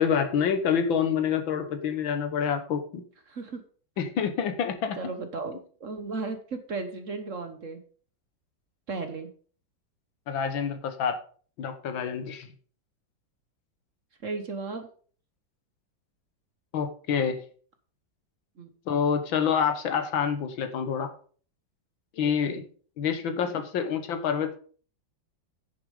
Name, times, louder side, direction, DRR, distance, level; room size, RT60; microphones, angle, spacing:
voice 1, 0.0-3.0 4.0-5.0 10.3-11.2 11.6-12.5 16.7-17.4 18.9-21.1 22.1-22.6 23.0-24.5, left 7 dB, 80° left, 8 dB, 2.0 m, -27 dB
voice 2, 3.3-3.6 5.0-7.8 8.9-9.3 14.2-14.9 18.6-18.7 22.5-22.6, right 3 dB, 45° right, 8 dB, 1.3 m, -35 dB
10.0 x 6.8 x 5.3 m, 0.43 s
omnidirectional pair, 2.1 m